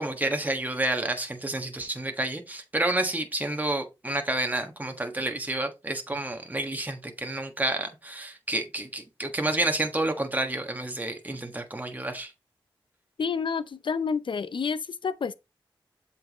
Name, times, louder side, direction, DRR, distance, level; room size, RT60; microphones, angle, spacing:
voice 1, 0.0-12.3, right 1 dB, 20° right, 1.3 m, -29 dB
voice 2, 13.2-15.3, left 5 dB, 65° left, 0.5 m, -29 dB
7.6 x 4.6 x 3.0 m
cardioid pair, 45°, 9 cm